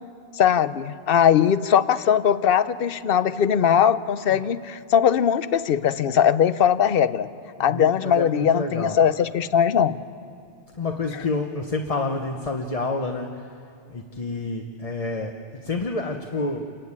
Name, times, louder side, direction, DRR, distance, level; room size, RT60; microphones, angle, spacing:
voice 1, 0.4-7.3 7.6-10.0, left 8 dB, 60° left, 14 dB, 0.9 m, -20 dB
voice 2, 7.6-9.0 10.7-13.5 13.9-15.3 15.6-16.7, left 3 dB, 35° left, 3 dB, 1.0 m, -28 dB
27.5 x 15.5 x 9.6 m, 2.5 s
omnidirectional pair, 1.1 m